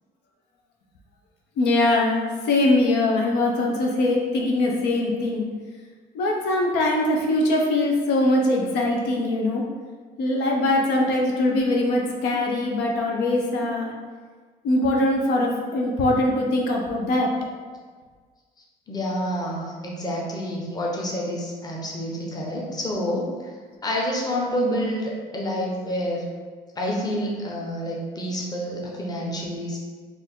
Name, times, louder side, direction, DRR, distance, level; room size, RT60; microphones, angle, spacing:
voice 1, 1.6-5.5 6.1-9.6 10.2-13.9 14.6-17.3, left 2 dB, 85° left, 0 dB, 0.7 m, -22 dB
voice 2, 18.9-23.3 23.8-26.2 26.8-29.8, equal, 25° left, -2 dB, 0.9 m, -28 dB
4.4 x 2.6 x 3.6 m, 1.5 s
cardioid pair, 110°, 17 cm